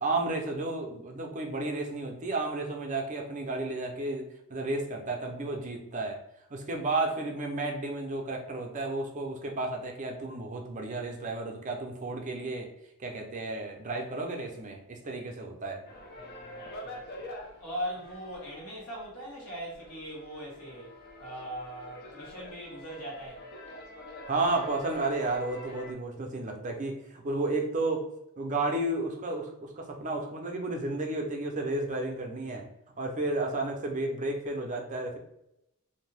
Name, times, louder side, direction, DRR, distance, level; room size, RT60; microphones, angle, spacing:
voice 1, 0.0-6.2 6.5-12.7 13.0-15.8 24.3-28.0 28.4-32.7 33.0-35.2, right 2 dB, 35° right, 2 dB, 0.5 m, -32 dB
sound 1, 15.8-25.9, left 1 dB, 45° left, 0.5 m, -46 dB
voice 2, 16.2-17.3 17.6-23.5, equal, 75° left, -4 dB, 1.3 m, -40 dB
2.6 x 2.2 x 3.2 m, 0.82 s
head